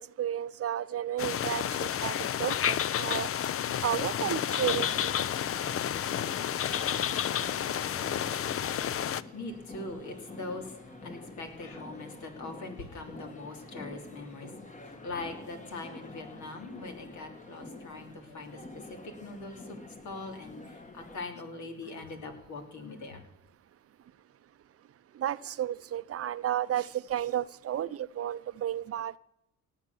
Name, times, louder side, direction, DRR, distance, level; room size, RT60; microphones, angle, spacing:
voice 1, 0.0-3.3 3.8-5.2 25.2-29.2, right 11 dB, 50° right, 16 dB, 0.6 m, -32 dB
sound 1, 1.2-9.2, left 10 dB, 50° left, 0.6 m, -30 dB
sound 2, 4.1-21.2, left 2 dB, 25° left, 1.4 m, -47 dB
voice 2, 7.6-19.8 20.0-23.2, left 3 dB, 70° left, 5 dB, 3.0 m, -42 dB
18.0 x 7.4 x 6.9 m, 0.80 s
cardioid pair, 90°, 30 cm